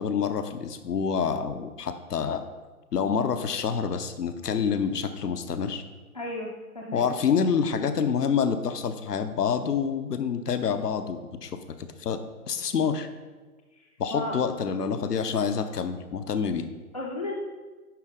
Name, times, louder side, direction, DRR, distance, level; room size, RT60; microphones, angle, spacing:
voice 1, 0.0-2.4 2.9-5.8 6.9-13.1 14.0-16.6, left 6 dB, 90° left, 9 dB, 0.8 m, -27 dB
voice 2, 6.1-7.1 13.7-14.4 16.9-17.3, left 1 dB, 30° left, -4 dB, 0.4 m, -35 dB
10.5 x 4.0 x 3.6 m, 1.3 s
hypercardioid pair, 145°, 46 cm